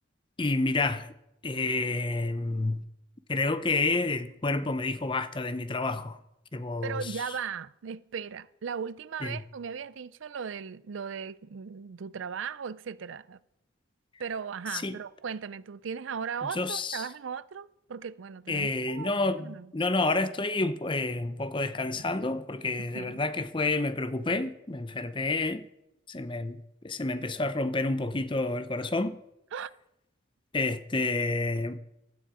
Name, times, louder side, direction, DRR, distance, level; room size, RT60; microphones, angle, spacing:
voice 1, 0.4-1.1 1.4-2.8 3.3-6.2 6.5-7.1 9.2-9.4 14.7-15.0 16.5-17.1 18.5-25.7 26.1-26.6 26.8-29.2 30.5-31.8, left 2 dB, 25° left, 0.6 m, -29 dB
voice 2, 6.8-13.4 14.2-19.7 22.8-23.2 29.5-29.7, right 6 dB, 70° right, 0.4 m, -37 dB
16.0 x 12.0 x 4.9 m
head